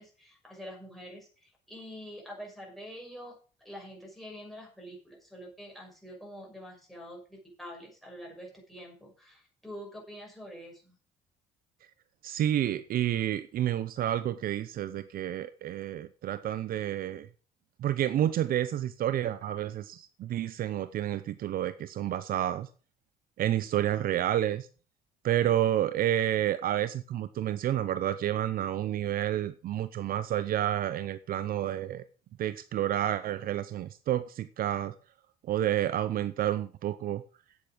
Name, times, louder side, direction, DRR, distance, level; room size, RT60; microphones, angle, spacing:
voice 1, 0.0-3.3 3.6-11.0, equal, ahead, 6.3 m, -46 dB
voice 2, 12.2-17.3 17.8-22.7 23.4-24.7 25.2-32.0 32.4-34.9 35.5-37.2, right 12 dB, 60° right, 0.7 m, -29 dB
9.0 x 8.4 x 6.2 m
cardioid pair, 110°, 17 cm